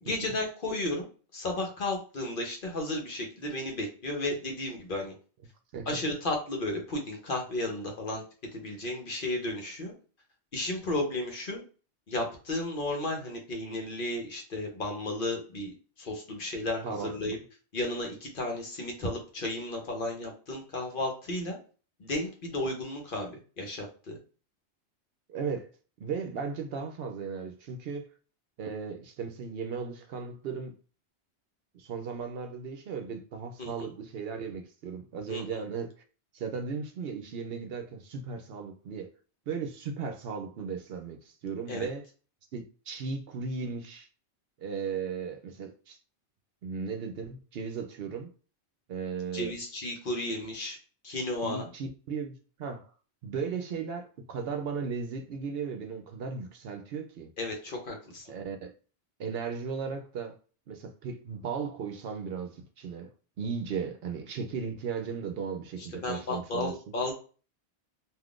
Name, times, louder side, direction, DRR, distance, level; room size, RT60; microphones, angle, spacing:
voice 1, 0.0-1.1 1.3-5.1 5.9-8.2 8.5-9.9 10.5-11.6 12.1-15.7 16.0-17.4 17.7-21.6 22.0-24.2 33.6-33.9 35.3-35.4 41.7-41.9 49.3-50.8 51.0-51.7 57.4-58.3 65.9-67.2, left 2 dB, 55° left, 0.9 m, -33 dB
voice 2, 5.7-6.0 16.8-17.3 25.3-25.7 26.0-28.1 28.6-30.7 31.7-35.9 36.3-39.1 39.5-42.1 42.5-44.1 44.6-46.0 46.6-48.3 48.9-49.5 51.4-52.9 53.2-57.3 58.3-58.7 59.2-60.4 60.7-63.1 63.4-66.7, right 5 dB, 65° right, 0.7 m, -36 dB
3.5 x 2.4 x 2.4 m
omnidirectional pair, 1.1 m